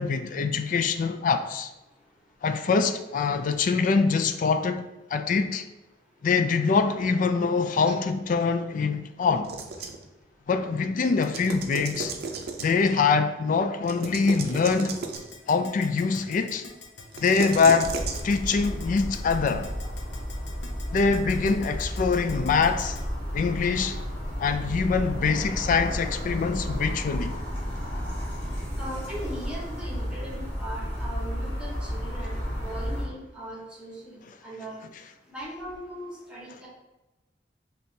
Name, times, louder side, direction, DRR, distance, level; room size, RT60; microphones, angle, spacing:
voice 1, 0.0-1.7 2.4-4.8 5.1-5.6 6.2-9.5 10.5-12.1 12.6-14.9 15.5-16.6 17.2-18.0 18.2-19.7 20.9-23.0 23.3-24.0 24.4-27.4, left 5 dB, 45° left, 0.3 m, -24 dB
sound 1, 9.4-10.1 11.0-13.0 13.8-15.3 17.1-18.2, right 4 dB, 60° right, 0.5 m, -35 dB
Keyboard (musical), 15.2-23.0, left 4 dB, 70° left, 0.7 m, -44 dB
sound 2, 17.8-33.1, equal, 30° left, 1.4 m, -32 dB
voice 2, 28.8-34.8 35.3-36.7, right 1 dB, 5° right, 1.3 m, -39 dB
5.2 x 2.9 x 2.7 m
head